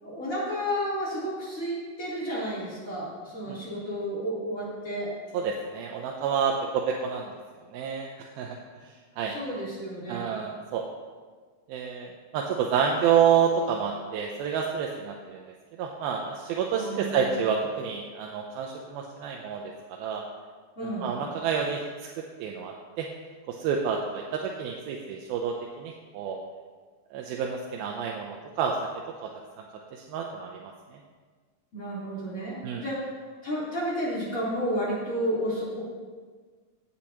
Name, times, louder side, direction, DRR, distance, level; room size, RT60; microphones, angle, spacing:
voice 1, 0.0-5.1 9.2-10.3 16.7-17.4 20.8-21.2 31.7-33.1 33.4-35.8, equal, 20° left, -8 dB, 3.5 m, -32 dB
voice 2, 5.3-7.3 7.7-8.6 8.8-9.3 10.1-10.8 11.7-15.4 15.8-19.7 20.0-20.2 20.8-21.8 22.1-23.1 23.5-26.4 27.1-28.8 29.2-29.3 29.9-31.0 32.6-32.9, right 7 dB, 80° right, 0 dB, 2.5 m, -29 dB
16.5 x 8.5 x 2.9 m, 1.5 s
omnidirectional pair, 4.5 m